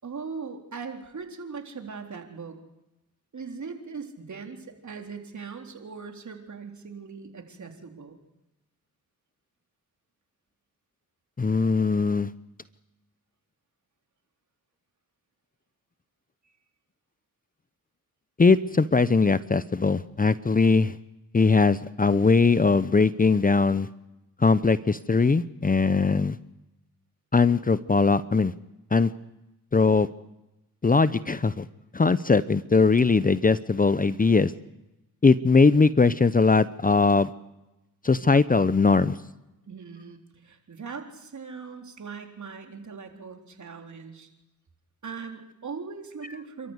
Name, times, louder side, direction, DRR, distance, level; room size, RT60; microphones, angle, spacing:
voice 1, 0.0-2.6 3.3-8.2 39.7-44.3 45.0-46.7, right 5 dB, 55° right, 4 dB, 3.9 m, -40 dB
voice 2, 11.4-12.3 18.4-20.9 21.3-23.9 24.4-26.4 27.3-28.5 28.9-29.1 29.7-30.1 30.8-31.7 31.9-34.5 35.2-37.3 38.0-39.2, left 4 dB, 25° left, 16 dB, 0.8 m, -20 dB
29.0 x 13.5 x 8.1 m, 0.95 s
cardioid pair, 55°, 35 cm